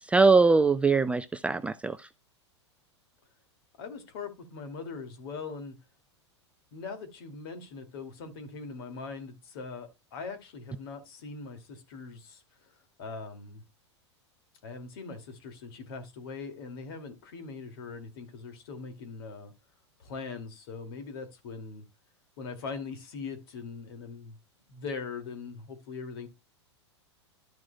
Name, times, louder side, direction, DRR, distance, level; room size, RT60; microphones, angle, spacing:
voice 1, 0.0-2.1, right 4 dB, 10° right, 0.4 m, -22 dB
voice 2, 3.8-5.8 6.7-12.4 13.0-13.6 14.6-19.5 20.0-21.8 22.4-24.4 24.7-26.3, left 4 dB, 55° left, 2.4 m, -41 dB
12.5 x 6.0 x 2.2 m
figure-of-eight pair, 95°, 15 cm